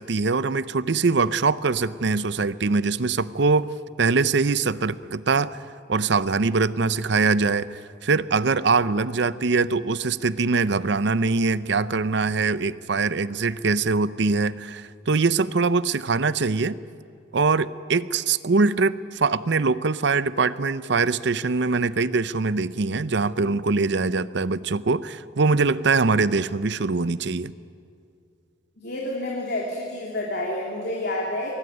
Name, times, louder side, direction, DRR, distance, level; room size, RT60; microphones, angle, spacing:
voice 1, 0.0-3.7 4.0-5.6 5.9-16.8 17.3-27.5, right 4 dB, 60° right, 16 dB, 0.6 m, -23 dB
voice 2, 28.8-31.5, left 1 dB, 55° left, -3 dB, 3.3 m, -29 dB
23.5 x 18.0 x 9.6 m, 2.4 s
head